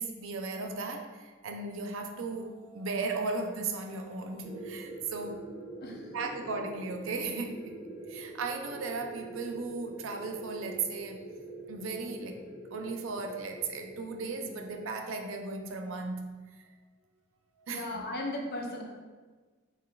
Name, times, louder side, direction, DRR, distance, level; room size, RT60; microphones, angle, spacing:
voice 1, 0.0-5.4 6.1-7.8 8.1-11.3 11.7-12.4 12.7-16.4 17.7-18.0, right 3 dB, 65° right, 5 dB, 0.5 m, -36 dB
sound 1, 4.4-14.9, right 1 dB, 5° right, 0.9 m, -45 dB
voice 2, 17.7-18.8, left 1 dB, 50° left, 0 dB, 0.7 m, -36 dB
5.5 x 4.0 x 2.3 m, 1.4 s
head